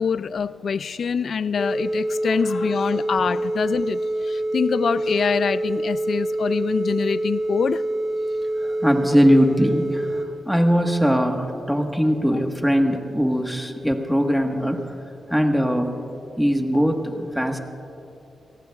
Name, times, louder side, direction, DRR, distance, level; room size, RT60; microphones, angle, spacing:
voice 1, 0.0-7.8, left 6 dB, 65° left, 15 dB, 0.3 m, -25 dB
sound 1, 1.6-10.3, right 1 dB, 20° left, 2.6 m, -26 dB
voice 2, 8.6-14.9 15.3-16.0 16.4-17.6, equal, ahead, 3 dB, 1.4 m, -21 dB
29.5 x 18.0 x 2.4 m, 2.8 s
cardioid pair, 90°, 0 cm